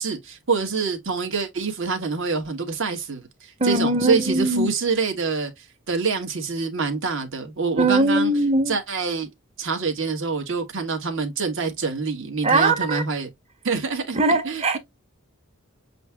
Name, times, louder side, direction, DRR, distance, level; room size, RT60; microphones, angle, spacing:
voice 1, 0.0-5.5 5.9-8.3 8.7-9.3 9.6-13.3 13.6-14.2 14.4-14.8, right 4 dB, 60° right, 1.6 m, -26 dB
voice 2, 3.6-4.7 7.8-8.8 12.4-13.0 14.1-14.8, right 2 dB, 30° right, 1.0 m, -20 dB
7.5 x 2.8 x 2.3 m
head